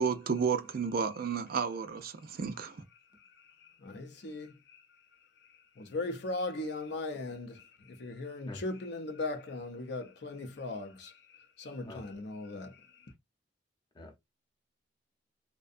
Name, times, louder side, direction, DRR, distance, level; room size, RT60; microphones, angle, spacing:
voice 1, 0.0-2.8, right 6 dB, 55° right, 0.4 m, -32 dB
voice 2, 3.8-4.8 5.8-11.1 11.6-12.8, left 2 dB, 65° left, 0.6 m, -38 dB
voice 3, 8.5-8.6 11.8-12.1 13.9-14.2, left 2 dB, 25° left, 0.7 m, -46 dB
2.6 x 2.1 x 2.5 m
head